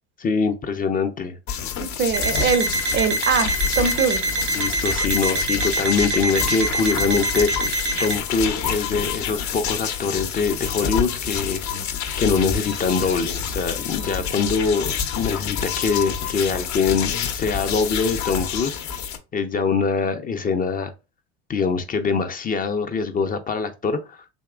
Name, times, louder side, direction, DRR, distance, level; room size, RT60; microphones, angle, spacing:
voice 1, 0.2-1.4 4.5-11.6 12.2-18.7 19.3-20.9 21.5-24.2, left 5 dB, 25° left, 0.5 m, -23 dB
sound 1, 1.5-19.2, left 7 dB, 60° left, 0.8 m, -28 dB
voice 2, 1.8-4.2, right 6 dB, 35° right, 0.5 m, -23 dB
Alarm, 2.1-8.2, right 2 dB, 85° right, 0.7 m, -25 dB
3.5 x 2.9 x 2.3 m
hypercardioid pair, 75°, 33 cm